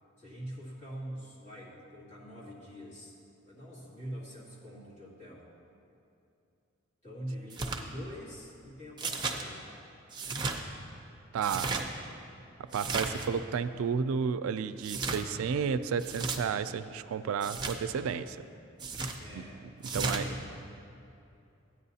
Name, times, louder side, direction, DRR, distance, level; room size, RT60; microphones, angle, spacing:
voice 1, 0.2-3.1 3.4-5.5 7.0-9.7 11.5-12.0 19.2-20.4, equal, 35° left, -7 dB, 2.2 m, -44 dB
sound 1, 7.5-7.8 9.0-9.4 10.1-10.6 11.4-11.8 12.7-13.3 14.8-15.2 16.0-16.4 17.4-17.8 18.8-19.2 19.8-20.2, right 3 dB, 20° right, 0.5 m, -34 dB
voice 2, 11.3-11.8 12.7-18.4 19.3-19.4 19.9-20.2, right 6 dB, 85° right, 12 dB, 0.3 m, -32 dB
13.5 x 9.5 x 2.8 m, 2.7 s
head